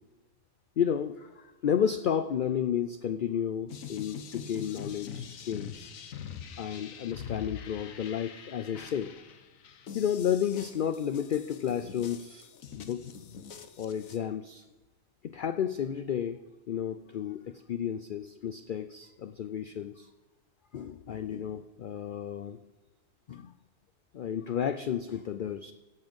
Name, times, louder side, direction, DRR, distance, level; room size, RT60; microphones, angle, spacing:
voice 1, 0.8-5.9 6.5-9.1 9.9-12.5 12.7-13.0 13.8-14.6 15.2-16.4 16.7-20.1 20.7-22.6 23.3-23.5 24.1-25.7, left 9 dB, 60° left, 10 dB, 0.5 m, -32 dB
sound 1, 3.7-14.2, left 7 dB, 85° left, 1.3 m, -44 dB
17.0 x 5.7 x 5.2 m, 1.2 s
omnidirectional pair, 1.4 m